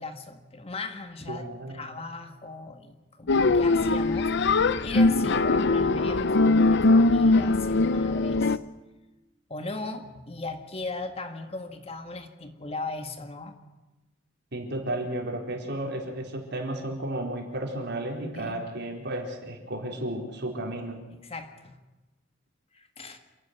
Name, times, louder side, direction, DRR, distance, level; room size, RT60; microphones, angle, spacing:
voice 1, 0.0-8.6 9.5-13.5 18.3-18.6 21.1-21.8 22.7-23.2, left 3 dB, 30° left, 7 dB, 1.7 m, -38 dB
voice 2, 1.3-1.8 14.5-21.0, right 1 dB, 60° right, 1 dB, 4.4 m, -33 dB
sound 1, 3.3-8.6, left 3 dB, 60° left, 0.7 m, -21 dB
28.0 x 11.5 x 9.6 m, 1.1 s
head